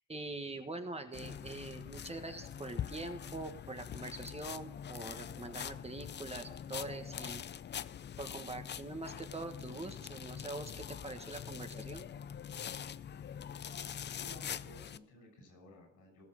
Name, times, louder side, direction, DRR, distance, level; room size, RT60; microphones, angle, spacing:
voice 1, 0.1-7.4 8.2-12.1, right 2 dB, 20° right, 6 dB, 1.5 m, -44 dB
sound 1, 1.1-15.0, left 8 dB, 35° left, 0.5 m, -44 dB
voice 2, 14.2-16.2, left 1 dB, 85° left, 2 dB, 6.2 m, -55 dB
18.0 x 6.3 x 6.5 m, 0.68 s
cardioid pair, 90°, 30 cm